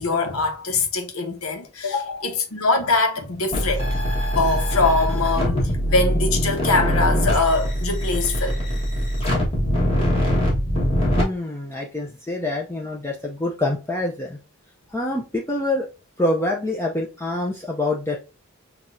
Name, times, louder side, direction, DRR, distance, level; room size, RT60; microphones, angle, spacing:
voice 1, 0.0-8.7, left 3 dB, 90° left, 0.9 m, -23 dB
sound 1, 3.5-11.2, equal, 25° left, 1.3 m, -22 dB
voice 2, 11.0-14.4 14.9-15.9 16.2-18.2, left 2 dB, 10° left, 0.5 m, -26 dB
5.8 x 2.3 x 2.5 m
head